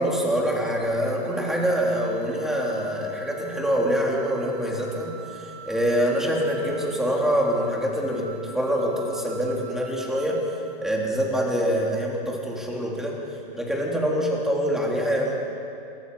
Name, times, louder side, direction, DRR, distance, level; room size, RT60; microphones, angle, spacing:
voice 1, 0.0-10.4 10.8-13.2 13.5-15.3, equal, ahead, -3 dB, 3.6 m, -25 dB
sound 1, 1.2-10.8, right 5 dB, 40° right, 4.9 m, -45 dB
27.0 x 23.5 x 5.6 m, 2.6 s
hypercardioid pair, 150°, 29 cm